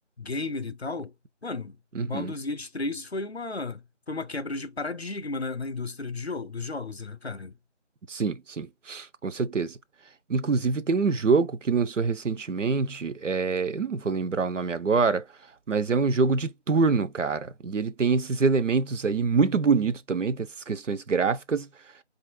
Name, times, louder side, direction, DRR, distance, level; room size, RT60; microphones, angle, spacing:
voice 1, 0.2-1.1 1.4-7.5, left 3 dB, 60° left, 0.6 m, -34 dB
voice 2, 1.9-2.3 8.1-9.8 10.3-15.2 15.7-21.7, right 4 dB, 90° right, 0.6 m, -25 dB
4.8 x 2.6 x 2.5 m
figure-of-eight pair, 175°, 36 cm